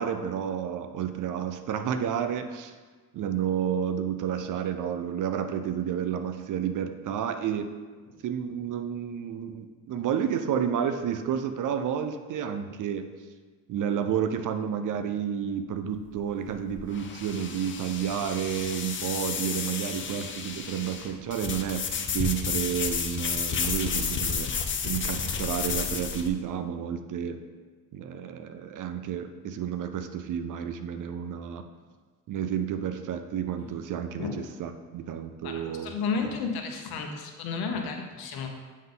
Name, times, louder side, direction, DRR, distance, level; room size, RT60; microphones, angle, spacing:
voice 1, 0.0-2.7 3.1-7.7 8.2-13.1 13.7-24.5 24.8-27.4 27.9-31.6 32.3-34.3 34.6-35.9, right 8 dB, 60° right, 8 dB, 0.5 m, -30 dB
sound 1, 15.9-26.3, left 6 dB, 35° left, 0.5 m, -32 dB
voice 2, 35.4-38.5, left 5 dB, 85° left, 3 dB, 0.9 m, -33 dB
7.4 x 3.7 x 3.9 m, 1.4 s
cardioid pair, 135°, 36 cm